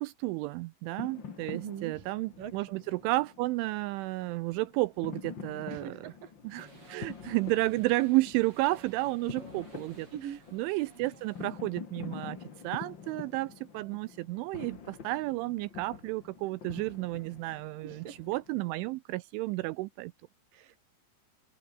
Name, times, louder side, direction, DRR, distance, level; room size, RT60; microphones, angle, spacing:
voice 1, 0.0-6.1 6.4-10.1 10.5-12.4 12.6-20.1, right 20 dB, 85° right, 2.8 m, -32 dB
sound 1, 0.9-19.0, left 6 dB, 80° left, 1.0 m, -47 dB
voice 2, 1.5-2.0 2.4-2.5 5.7-6.3 10.1-10.4 17.8-18.2 20.5-20.8, right 9 dB, 55° right, 3.0 m, -42 dB
sound 2, 6.6-11.6, right 3 dB, 25° right, 7.9 m, -55 dB
open air
omnidirectional pair, 6.0 m